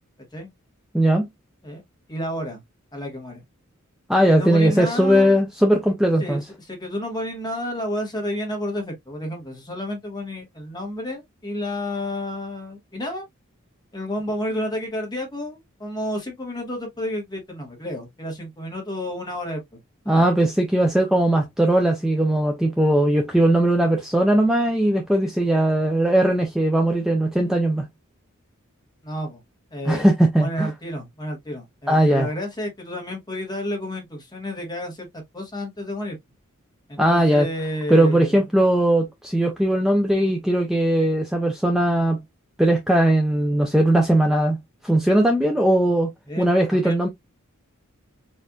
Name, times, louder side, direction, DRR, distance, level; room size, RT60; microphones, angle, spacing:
voice 1, 0.9-1.3 4.1-6.4 20.1-27.9 29.9-30.7 31.9-32.3 37.0-37.5 37.9-42.2 42.6-44.6 44.8-46.1 46.4-47.1, right 1 dB, ahead, 0.4 m, -19 dB
voice 2, 2.1-2.6 2.9-3.4 4.3-5.4 6.2-13.2 13.9-19.6 20.0-20.3 23.1-23.2 27.4-27.6 29.0-29.4 29.7-30.1 30.4-35.1 35.3-36.2 36.9-38.4 46.3-47.0, left 1 dB, 20° left, 1.2 m, -31 dB
4.2 x 2.5 x 2.2 m
head